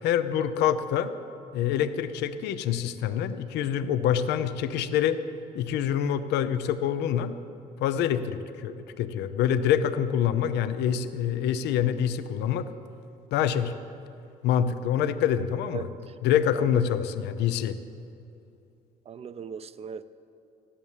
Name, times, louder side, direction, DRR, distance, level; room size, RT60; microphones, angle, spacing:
voice 1, 0.0-1.1 1.5-5.2 5.5-7.3 7.8-12.7 13.3-13.7 14.4-15.9 16.2-17.8, left 9 dB, 85° left, 0.8 m, -26 dB
voice 2, 19.1-20.0, right 7 dB, 35° right, 0.6 m, -38 dB
14.5 x 11.5 x 7.3 m
cardioid pair, 110°, 17 cm